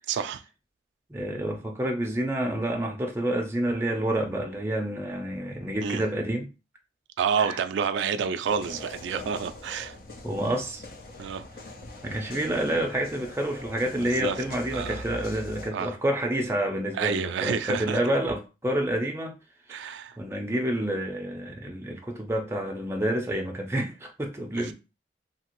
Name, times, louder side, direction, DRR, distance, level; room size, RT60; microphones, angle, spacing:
voice 1, 0.1-0.4 5.8-6.0 7.2-9.9 11.2-11.4 14.0-14.4 14.7-15.0 15.7-15.9 17.0-18.0 19.7-20.2 24.6-24.7, right 6 dB, 85° right, 0.3 m, -29 dB
voice 2, 1.1-6.5 7.4-7.6 10.2-10.8 12.0-19.3 19.7-24.7, right 1 dB, 15° right, 0.5 m, -28 dB
sound 1, 8.4-15.7, left 1 dB, 50° left, 0.5 m, -42 dB
2.8 x 2.5 x 2.9 m
head